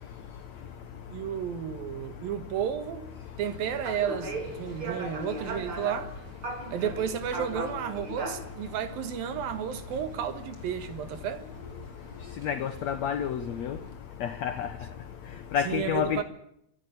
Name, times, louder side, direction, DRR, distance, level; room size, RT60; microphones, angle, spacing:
voice 1, 1.1-3.1 3.4-6.1 6.7-11.4 15.7-16.2, right 9 dB, 85° right, 3.3 m, -32 dB
sound 1, 3.5-13.9, right 2 dB, 40° right, 3.7 m, -40 dB
voice 2, 12.4-13.8 14.2-14.7 15.5-16.2, left 8 dB, 65° left, 1.9 m, -29 dB
24.5 x 12.5 x 9.9 m
omnidirectional pair, 4.1 m